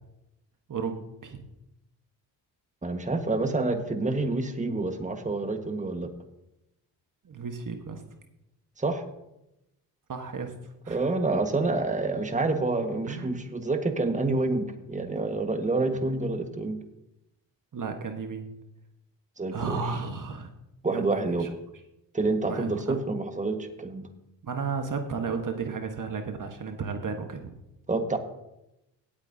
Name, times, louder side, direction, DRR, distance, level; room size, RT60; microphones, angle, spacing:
voice 1, 0.7-1.4 7.2-8.0 10.1-10.5 10.8-11.0 13.1-13.4 17.7-18.5 19.5-20.5 20.9-21.5 22.5-23.0 24.4-27.5, right 5 dB, 45° right, 5 dB, 1.4 m, -33 dB
voice 2, 2.8-6.1 8.8-9.0 10.9-16.8 19.4-19.8 20.8-21.5 22.1-24.1 27.9-28.2, right 3 dB, 15° right, 6 dB, 1.5 m, -28 dB
17.0 x 8.6 x 2.8 m, 0.89 s
supercardioid pair, 55°, 45 cm